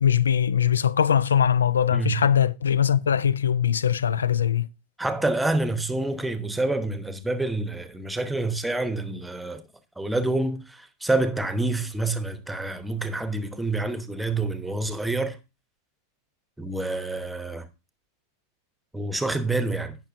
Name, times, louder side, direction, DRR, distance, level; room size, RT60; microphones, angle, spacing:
voice 1, 0.0-4.7, left 8 dB, 70° left, 0.4 m, -21 dB
voice 2, 1.9-2.3 5.0-9.6 10.0-15.4 16.6-17.6 18.9-20.0, right 2 dB, 5° right, 1.1 m, -27 dB
17.0 x 6.0 x 2.6 m
figure-of-eight pair, 90°, 0 cm